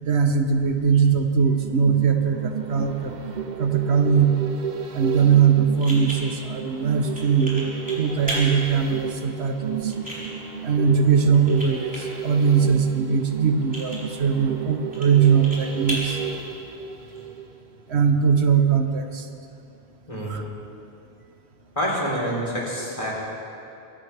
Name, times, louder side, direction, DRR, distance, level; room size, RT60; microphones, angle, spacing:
voice 1, 0.0-3.1 3.6-4.4 4.9-9.9 10.6-16.2 17.9-19.3 20.3-20.4, right 6 dB, 80° right, 6 dB, 1.3 m, -20 dB
sound 1, 1.5-17.7 18.1-18.2, right 7 dB, 45° right, 1.0 m, -33 dB
sound 2, 5.2-17.2, equal, 5° right, 4.6 m, -37 dB
voice 2, 21.8-23.1, equal, 30° left, -4 dB, 4.0 m, -27 dB
23.5 x 17.5 x 3.5 m, 2.7 s
omnidirectional pair, 1.1 m